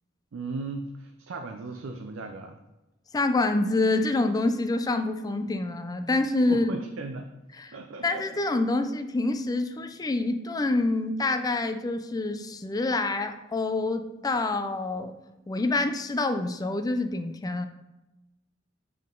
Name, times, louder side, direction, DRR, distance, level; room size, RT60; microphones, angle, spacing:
voice 1, 0.3-2.6 6.5-7.3 7.7-8.4, right 3 dB, 80° right, 5 dB, 0.5 m, -37 dB
voice 2, 3.1-6.7 7.6-7.7 8.0-15.1 15.5-17.7, left 2 dB, 20° left, 8 dB, 0.4 m, -26 dB
7.6 x 3.8 x 3.7 m, 0.99 s
head